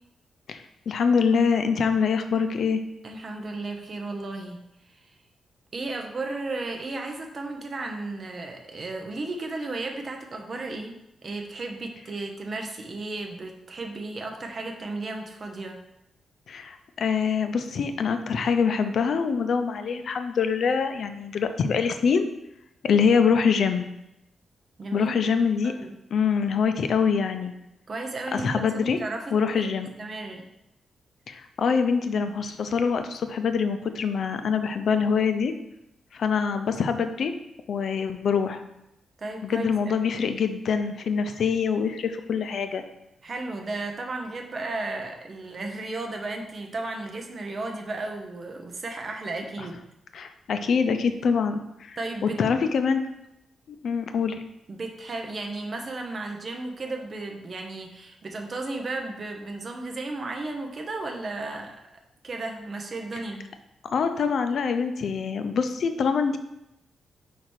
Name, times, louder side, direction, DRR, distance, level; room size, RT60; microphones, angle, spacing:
voice 1, 0.5-2.8 16.5-22.3 22.8-23.8 24.9-25.7 26.1-27.5 28.3-29.0 29.3-29.9 31.3-35.5 36.1-37.3 37.7-38.6 39.4-42.8 50.1-53.0 53.7-54.4 63.9-66.4, left 6 dB, 60° left, 8 dB, 0.5 m, -24 dB
voice 2, 3.0-4.6 4.9-5.1 5.7-11.0 11.2-15.8 24.8-25.3 25.6-25.9 27.9-29.7 30.0-30.5 39.2-40.1 43.2-49.8 52.0-52.4 54.7-61.8 62.2-63.5, right 2 dB, 35° right, 3 dB, 0.9 m, -34 dB
4.9 x 4.7 x 4.5 m, 0.85 s
wide cardioid pair, 145°, 0 cm